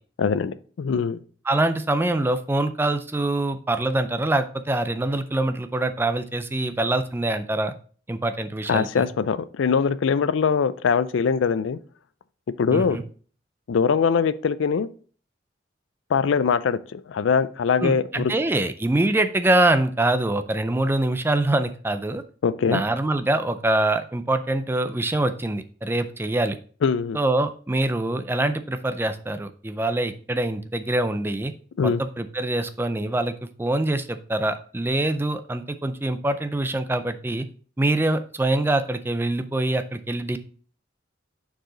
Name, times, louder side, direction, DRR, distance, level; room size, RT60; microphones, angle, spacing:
voice 1, 0.2-1.2 8.7-11.8 12.6-13.0 13.7-14.9 16.1-18.3 22.4-22.8 26.8-27.2 31.8-32.0, left 6 dB, 85° left, 0.4 m, -22 dB
voice 2, 1.5-7.7 8.1-9.1 12.7-13.0 17.8-22.2 22.7-26.6 27.1-31.5 31.8-37.5 37.8-40.4, right 2 dB, 10° right, 0.4 m, -24 dB
6.5 x 4.8 x 3.8 m
head